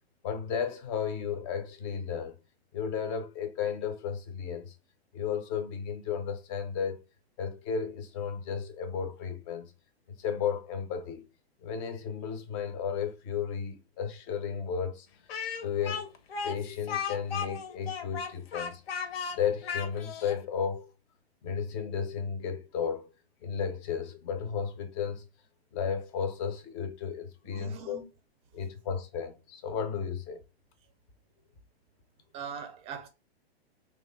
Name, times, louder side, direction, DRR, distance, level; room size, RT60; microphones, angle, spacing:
voice 1, 0.2-2.4 2.7-4.7 5.1-7.0 7.4-9.7 10.2-11.2 11.6-15.1 15.6-16.1 16.4-18.8 19.3-20.9 21.4-23.1 23.4-25.3 25.7-28.0 28.5-30.4, left 7 dB, 30° left, 0.5 m, -33 dB
Speech, 15.3-20.4, left 6 dB, 65° left, 0.7 m, -35 dB
voice 2, 27.4-28.1 32.3-33.1, right 6 dB, 20° right, 0.5 m, -41 dB
3.1 x 2.3 x 4.0 m
hypercardioid pair, 130°, 32 cm